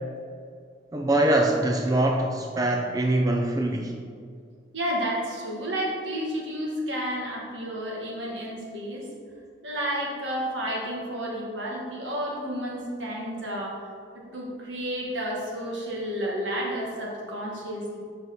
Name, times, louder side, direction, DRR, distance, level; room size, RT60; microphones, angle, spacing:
voice 1, 0.9-3.9, right 1 dB, 20° right, 2 dB, 0.4 m, -23 dB
voice 2, 4.7-9.1 9.6-13.8 14.1-18.0, equal, 75° right, -3 dB, 1.7 m, -31 dB
6.3 x 5.3 x 4.2 m, 2.2 s
head